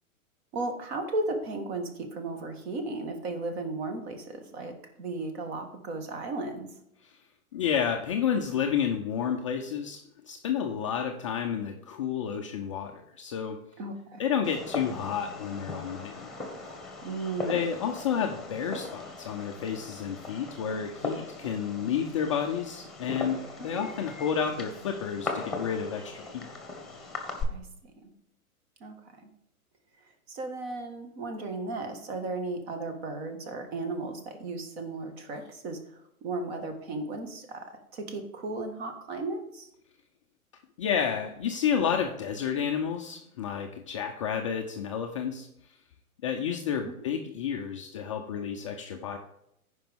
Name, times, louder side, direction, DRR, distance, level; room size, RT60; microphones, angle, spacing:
voice 1, 0.5-6.7 13.8-14.2 17.0-17.7 23.6-23.8 27.5-27.7 28.0-28.1 28.8-29.3 30.3-39.7, right 2 dB, 45° right, 6 dB, 1.8 m, -35 dB
voice 2, 7.5-10.0 10.2-13.6 14.2-16.3 17.5-26.5 40.8-45.5 46.2-49.2, left 7 dB, 25° left, 3 dB, 0.4 m, -30 dB
Fireworks, 14.4-27.4, left 3 dB, ahead, 1.3 m, -39 dB
15.5 x 5.2 x 3.5 m, 0.78 s
hypercardioid pair, 120°, 44 cm